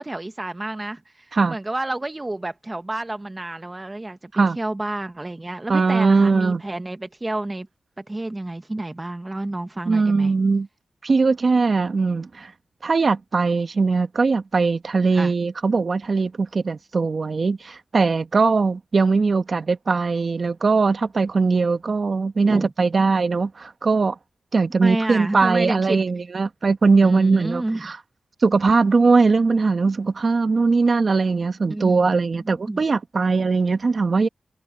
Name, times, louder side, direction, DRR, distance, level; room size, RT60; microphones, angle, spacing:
voice 1, 0.0-7.7 8.0-10.3 15.1-15.3 22.5-22.7 24.8-26.0 27.0-27.9 31.7-32.2 32.7-32.8, right 2 dB, 25° right, 1.3 m, -29 dB
voice 2, 5.7-6.6 9.9-10.7 11.0-12.5 12.8-24.1 24.5-28.0 28.4-34.3, right 4 dB, 60° right, 1.7 m, -20 dB
cardioid pair, 60°, 0 cm